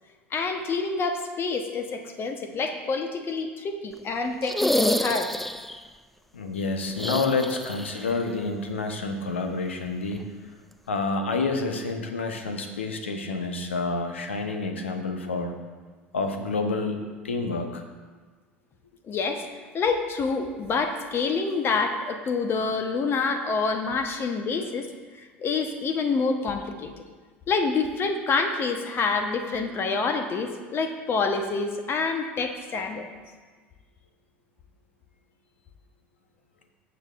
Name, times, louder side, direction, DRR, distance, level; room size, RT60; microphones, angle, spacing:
voice 1, 0.3-5.3 19.1-19.4 19.7-24.9 25.1-27.0 27.5-33.1, left 4 dB, 40° left, 6 dB, 0.9 m, -27 dB
sound 1, 4.4-5.8 6.9-8.1 8.4-8.5 10.1-10.2, equal, ahead, 0.3 m, -28 dB
voice 2, 6.3-10.3 10.9-15.5 16.1-17.8, left 3 dB, 85° left, 6 dB, 0.9 m, -28 dB
14.0 x 7.1 x 2.4 m, 1.4 s
figure-of-eight pair, 70°, 6 cm